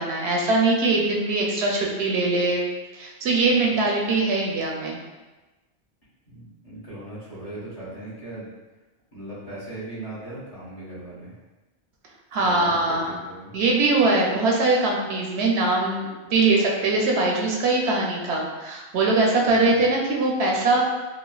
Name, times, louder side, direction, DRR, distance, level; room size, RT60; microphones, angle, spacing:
voice 1, 0.0-2.6 2.9-5.0 12.3-13.2 13.5-20.8, right 2 dB, 80° right, -1 dB, 0.9 m, -22 dB
voice 2, 6.3-8.5 9.1-11.4 12.4-13.5 19.4-19.8, right 1 dB, 35° left, -10 dB, 1.2 m, -38 dB
3.1 x 2.4 x 2.3 m, 1.1 s
omnidirectional pair, 1.1 m